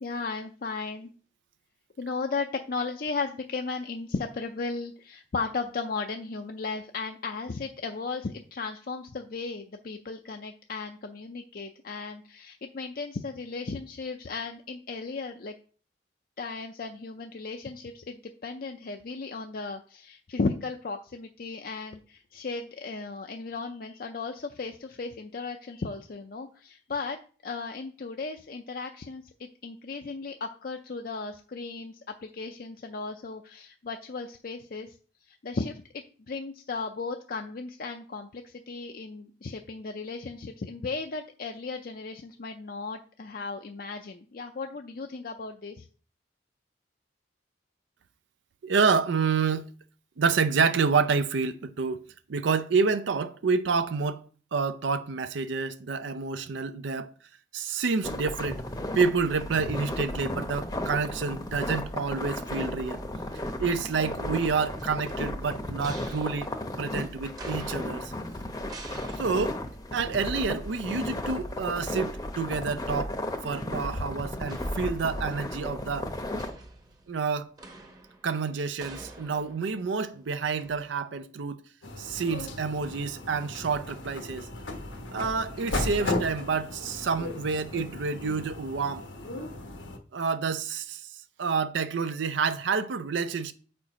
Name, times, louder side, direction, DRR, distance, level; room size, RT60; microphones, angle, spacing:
voice 1, 0.0-1.1 2.0-15.5 16.4-27.2 27.4-45.9, left 4 dB, 50° left, 0.5 m, -35 dB
voice 2, 48.6-49.7 50.2-52.0 52.3-54.2 54.5-57.1 57.5-58.6 59.0-63.0 63.6-66.5 66.8-68.1 69.2-69.6 69.9-73.1 73.4-76.1 77.1-77.5 78.2-81.6 82.0-84.5 85.1-89.1 90.1-91.1 91.4-93.5, right 5 dB, 75° right, 0.5 m, -28 dB
sound 1, 58.0-76.5, left 1 dB, 20° left, 0.7 m, -34 dB
sound 2, 64.4-71.0 71.3-71.4 74.5-75.5 76.4-80.9, right 2 dB, 20° right, 0.8 m, -48 dB
sound 3, 81.8-90.0, left 2 dB, 85° left, 1.1 m, -36 dB
7.3 x 4.4 x 4.9 m
head